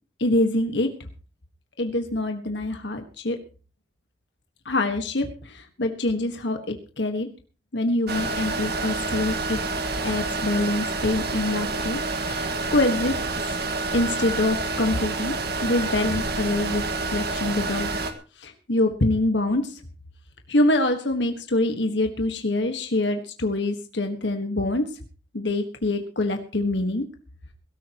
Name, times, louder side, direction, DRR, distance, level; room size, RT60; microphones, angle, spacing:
voice 1, 0.2-0.9 1.8-3.4 4.6-7.3 7.7-9.6 10.0-13.1 13.9-15.4 15.6-16.8 17.1-17.9 18.4-19.8 20.5-24.8 25.3-27.1, left 2 dB, 80° left, 5 dB, 1.6 m, -25 dB
Computer server room, 8.1-18.1, right 3 dB, 65° right, 1.7 m, -28 dB
22.5 x 13.5 x 3.0 m, 0.36 s
head